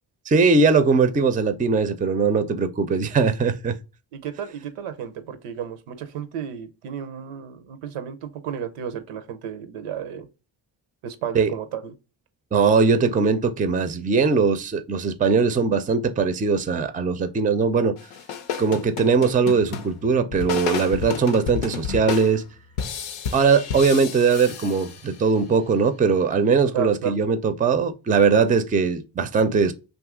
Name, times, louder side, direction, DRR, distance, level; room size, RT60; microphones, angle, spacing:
voice 1, 0.3-3.8 11.3-11.5 12.5-18.0 18.6-22.4 23.3-29.7, right 5 dB, 20° right, 0.4 m, -20 dB
voice 2, 4.1-10.3 11.0-11.9 26.7-27.1, right 9 dB, 85° right, 0.6 m, -32 dB
sound 1, 18.0-25.4, left 7 dB, 90° left, 0.6 m, -32 dB
2.7 x 2.4 x 3.5 m
supercardioid pair, 50°, 50 cm